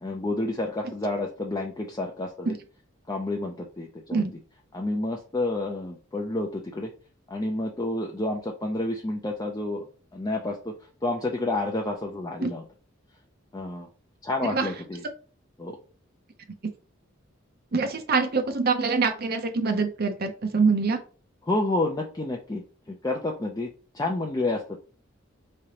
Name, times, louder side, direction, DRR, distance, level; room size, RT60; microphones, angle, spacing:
voice 1, 0.0-2.6 3.1-4.2 4.7-6.9 7.3-9.9 10.1-10.7 11.0-12.6 13.5-13.9 14.2-15.0 15.6-15.8 21.5-24.8, left 2 dB, 20° left, 0 dB, 0.5 m, -29 dB
voice 2, 17.7-21.0, right 4 dB, 50° right, 6 dB, 0.6 m, -24 dB
4.8 x 3.2 x 2.8 m, 0.38 s
head